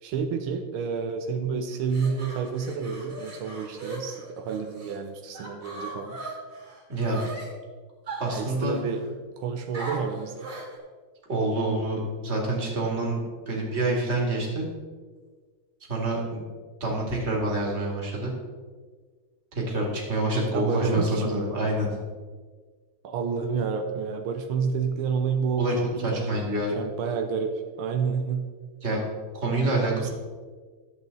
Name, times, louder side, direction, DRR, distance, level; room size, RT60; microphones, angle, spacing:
voice 1, 0.0-6.2 8.3-9.0 9.4-10.3 20.5-21.5 23.0-26.4 26.7-28.4 29.8-30.1, right 6 dB, 85° right, 6 dB, 1.6 m, -29 dB
sound 1, 1.7-5.0 5.3-7.5 8.1-9.1 9.7-10.8, right 2 dB, 45° right, 2.7 m, -39 dB
voice 2, 8.2-8.8 11.3-13.2 13.5-14.7 15.9-16.4 16.8-18.3 19.5-21.9 25.6-26.7 28.8-29.0 29.3-30.1, right 2 dB, 30° right, -2 dB, 2.3 m, -27 dB
12.0 x 7.8 x 4.0 m, 1.5 s
omnidirectional pair, 2.3 m